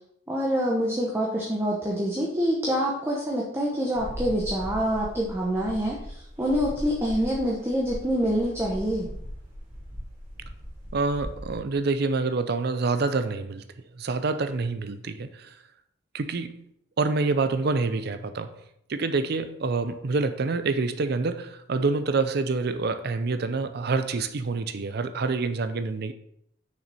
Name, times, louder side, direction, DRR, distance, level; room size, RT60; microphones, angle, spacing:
voice 1, 0.3-9.1, equal, 15° right, -3 dB, 1.0 m, -26 dB
sound 1, 3.9-11.5, equal, 40° right, 3.0 m, -39 dB
voice 2, 10.9-13.6 14.0-15.6 16.1-16.6 17.0-18.6 18.9-26.1, right 3 dB, 55° right, 10 dB, 0.5 m, -27 dB
6.5 x 5.9 x 4.1 m, 0.73 s
head